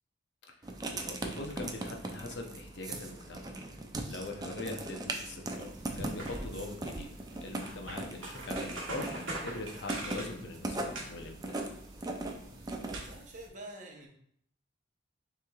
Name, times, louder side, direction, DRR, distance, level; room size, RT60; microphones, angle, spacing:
Writing, 0.6-13.1, right 2 dB, 20° right, 0.4 m, -40 dB
voice 1, 0.9-3.5 4.1-5.7 6.0-7.1 7.4-11.7, left 2 dB, 60° left, 3 dB, 0.6 m, -42 dB
sound 1, 5.5-13.5, right 2 dB, 90° right, 1.0 m, -44 dB
voice 2, 8.2-8.6 12.6-14.1, right 2 dB, 40° right, 1 dB, 0.8 m, -49 dB
6.6 x 3.1 x 2.3 m, 0.66 s
head